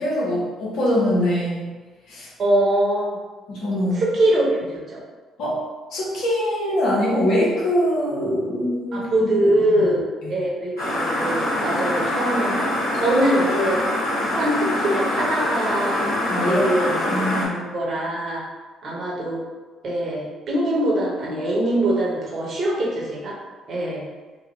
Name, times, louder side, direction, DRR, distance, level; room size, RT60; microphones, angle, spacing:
voice 1, 0.0-1.7 2.1-2.3 3.5-4.0 5.4-5.6 5.9-9.3 9.7-9.9 10.2-10.4 16.0-16.7 17.1-17.6, equal, 65° left, -6 dB, 1.0 m, -23 dB
voice 2, 2.4-3.2 3.9-4.4 4.7-5.0 8.9-10.0 10.3-13.8 14.2-16.1 16.4-17.2 17.5-18.4 18.8-19.4 19.8-23.4 23.7-24.1, right 1 dB, 50° right, -4 dB, 1.0 m, -23 dB
sound 1, 10.8-17.5, left 1 dB, 90° left, 1.0 m, -24 dB
3.0 x 2.3 x 3.1 m, 1.3 s
hypercardioid pair, 50°, 0 cm